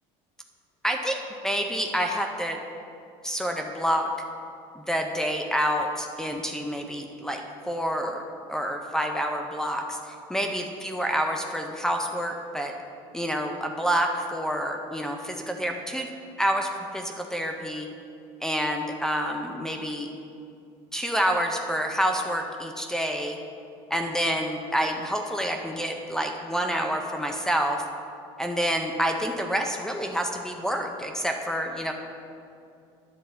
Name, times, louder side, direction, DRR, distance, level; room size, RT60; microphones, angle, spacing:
voice 1, 0.8-1.2 1.4-2.6 3.2-4.1 4.8-8.2 8.5-12.7 13.1-16.1 16.4-17.9 18.4-20.1 20.9-23.4 23.9-27.8 28.4-31.9, equal, 5° left, 3 dB, 0.5 m, -28 dB
10.0 x 6.9 x 4.2 m, 2.5 s
cardioid pair, 160°, 13 cm